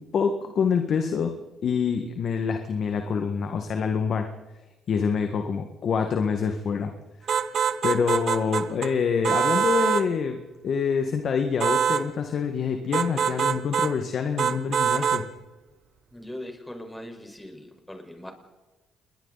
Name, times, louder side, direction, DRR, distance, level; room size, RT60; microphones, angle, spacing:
voice 1, 0.0-1.3 1.6-4.3 4.9-6.9 7.2-7.3 7.8-15.2, left 6 dB, 60° left, 5 dB, 1.8 m, -26 dB
sound 1, 7.3-8.9 9.2-10.1 11.6-12.1 12.9-13.9 14.4-15.3, right 7 dB, 60° right, 1.2 m, -24 dB
voice 2, 16.1-18.3, left 1 dB, 10° left, 3 dB, 5.1 m, -40 dB
28.5 x 22.0 x 4.2 m, 1.2 s
cardioid pair, 75°, 0 cm